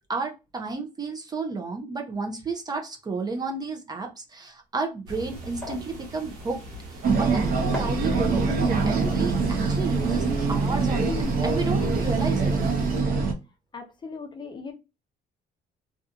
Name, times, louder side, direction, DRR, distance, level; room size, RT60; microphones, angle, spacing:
voice 1, 0.1-6.6 6.9-7.4 7.8-11.1 11.4-12.5, right 4 dB, 25° right, 0.5 m, -32 dB
sound 1, 4.5-10.7 11.0-11.2, left 1 dB, 5° left, 1.3 m, -44 dB
sound 2, 5.1-13.0, right 1 dB, 90° right, 1.2 m, -42 dB
sound 3, 7.0-13.3, right 4 dB, 60° right, 0.8 m, -24 dB
voice 2, 13.7-14.7, left 4 dB, 25° left, 0.6 m, -39 dB
2.7 x 2.4 x 2.4 m
cardioid pair, 110°, 17 cm